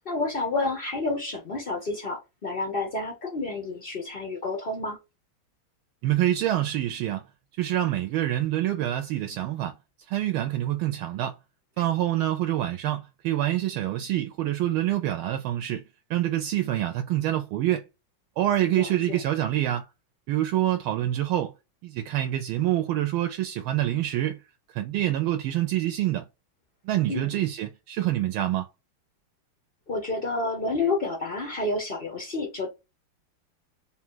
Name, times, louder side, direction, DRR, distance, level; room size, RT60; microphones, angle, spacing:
voice 1, 0.0-5.0 18.8-19.2 27.1-27.5 29.9-32.7, left 3 dB, 65° left, 0.5 m, -30 dB
voice 2, 6.0-7.2 7.6-9.8 10.1-11.4 11.8-15.8 16.1-17.8 18.4-19.9 20.3-21.5 21.8-24.4 24.7-26.3 26.8-28.7, right 13 dB, 80° right, 1.3 m, -26 dB
3.8 x 2.3 x 4.4 m
omnidirectional pair, 2.4 m